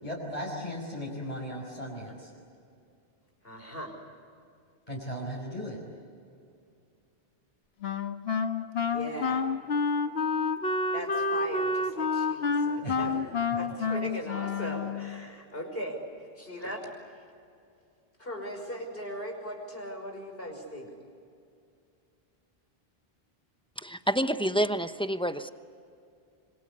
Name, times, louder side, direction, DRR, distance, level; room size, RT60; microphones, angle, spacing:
voice 1, 0.0-2.3 4.9-5.8 12.8-13.0 13.5-13.6, equal, 40° left, -4 dB, 5.5 m, -37 dB
voice 2, 3.4-3.9 8.9-9.5 10.9-16.0 16.4-17.0 18.2-20.9, equal, 65° left, 3 dB, 5.8 m, -39 dB
Wind instrument woodwind instrument, 7.8-15.2, left 4 dB, 80° left, 1.5 m, -29 dB
voice 3, 23.8-25.5, equal, 5° left, 9 dB, 0.9 m, -28 dB
26.5 x 25.0 x 8.4 m, 2.4 s
omnidirectional pair, 1.0 m